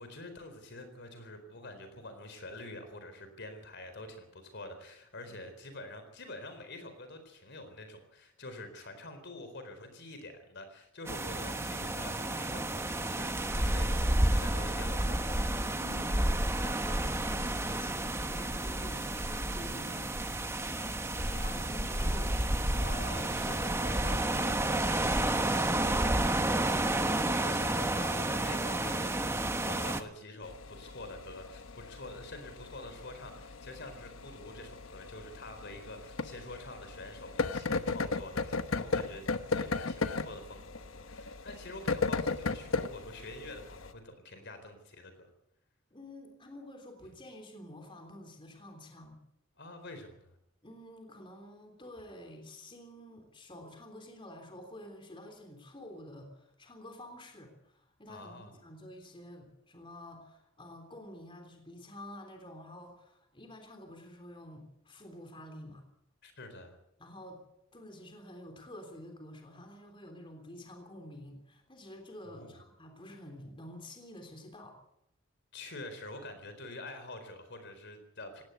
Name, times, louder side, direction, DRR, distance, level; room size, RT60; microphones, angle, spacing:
voice 1, 0.0-14.0 14.3-15.4 22.8-39.2 39.5-45.3 49.6-50.3 58.1-58.5 66.2-66.8 72.2-72.6 75.5-78.4, left 2 dB, 55° left, 8 dB, 4.1 m, -46 dB
sound 1, 11.1-30.0, right 1 dB, 15° right, 1.1 m, -31 dB
voice 2, 15.7-22.5 28.8-29.0 45.9-49.2 50.6-65.8 67.0-67.4 67.7-74.8, left 1 dB, 25° left, 4 dB, 3.5 m, -49 dB
sound 2, 30.4-43.9, left 4 dB, 75° left, 1.1 m, -36 dB
18.0 x 18.0 x 8.3 m, 0.79 s
head